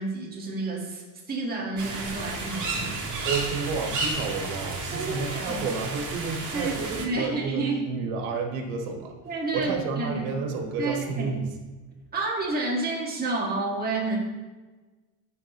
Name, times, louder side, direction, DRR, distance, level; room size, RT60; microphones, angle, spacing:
voice 1, 0.0-3.0 4.9-5.6 6.5-8.0 9.2-10.4 10.8-11.4 12.1-14.2, right 2 dB, 20° right, -4 dB, 1.7 m, -30 dB
sound 1, 1.8-7.0, right 2 dB, 35° right, 2.0 m, -32 dB
voice 2, 3.2-9.1 9.5-11.4, right 5 dB, 85° right, 2 dB, 1.5 m, -31 dB
15.0 x 5.0 x 3.0 m, 1.3 s
cardioid pair, 145°, 48 cm